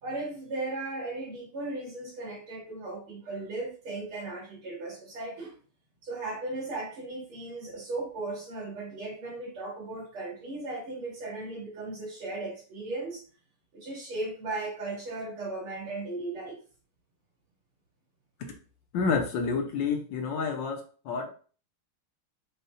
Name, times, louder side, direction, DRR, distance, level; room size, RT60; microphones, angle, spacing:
voice 1, 0.0-5.5 6.0-13.2 13.7-16.5, right 2 dB, 85° right, -4 dB, 3.3 m, -36 dB
voice 2, 18.9-21.3, left 5 dB, 70° left, 4 dB, 1.3 m, -29 dB
6.5 x 2.2 x 2.6 m, 0.39 s
omnidirectional pair, 2.3 m